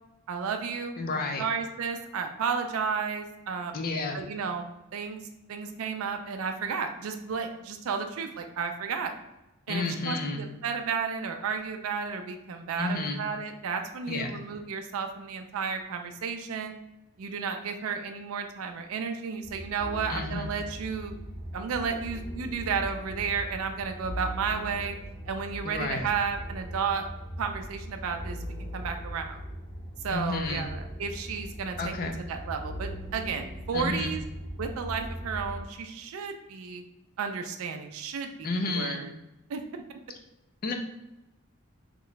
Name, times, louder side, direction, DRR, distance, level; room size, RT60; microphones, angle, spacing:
voice 1, 0.3-3.8 4.1-4.6 4.9-5.2 5.5-9.1 9.7-16.7 17.2-21.2 21.5-25.0 25.2-27.1 27.4-29.4 30.0-31.9 32.3-34.2 34.6-36.8 37.2-39.1 39.5-39.8, right 5 dB, 70° right, 5 dB, 0.4 m, -32 dB
voice 2, 1.0-1.4 3.7-4.2 9.7-10.4 12.8-13.2 14.1-14.3 20.1-20.5 25.6-26.1 30.1-30.7 31.8-32.2 33.7-34.1 38.4-39.0 40.6-40.7, left 3 dB, 40° left, 4 dB, 0.4 m, -31 dB
sound 1, 19.4-35.6, equal, 60° left, 1.5 m, -39 dB
3.0 x 2.2 x 3.9 m, 0.93 s
head